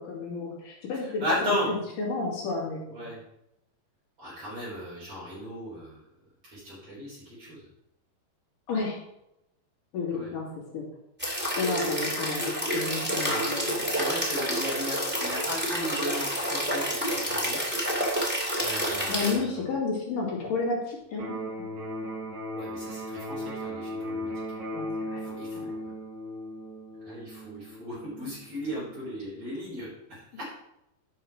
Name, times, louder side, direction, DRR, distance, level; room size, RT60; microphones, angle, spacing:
voice 1, 0.0-3.1 8.7-9.0 9.9-10.5 10.7-10.8 11.6-13.8 19.1-21.4 24.7-25.2 25.5-25.7, left 4 dB, 60° left, -3 dB, 3.7 m, -31 dB
voice 2, 1.2-1.7 2.9-3.2 4.2-6.0 6.4-7.6 10.1-10.3 13.2-17.6 18.6-19.7 22.5-24.3 25.2-25.8 27.0-30.5, equal, 40° right, -9 dB, 4.7 m, -35 dB
sound 1, 11.2-19.3, equal, 5° right, 0.9 m, -29 dB
Electric guitar, 21.1-29.1, equal, 80° right, 5.6 m, -37 dB
11.5 x 5.6 x 4.7 m, 0.83 s
omnidirectional pair, 4.6 m